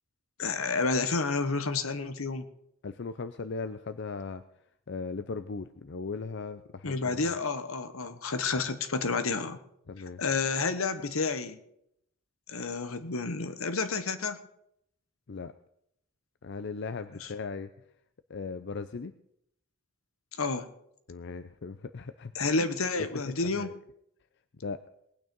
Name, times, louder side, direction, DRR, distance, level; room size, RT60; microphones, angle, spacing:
voice 1, 0.4-2.4 6.8-9.6 10.2-11.6 12.5-14.4 17.2-17.3 20.3-20.7 22.3-23.7, left 4 dB, 80° left, 11 dB, 1.2 m, -30 dB
voice 2, 2.8-4.4 4.9-7.3 9.9-10.2 15.3-15.5 16.4-17.7 18.3-19.1 21.1-22.3 22.6-22.7 23.3-23.7 24.6-24.8, left 4 dB, 55° left, 11 dB, 0.5 m, -38 dB
19.5 x 9.3 x 5.3 m, 0.74 s
head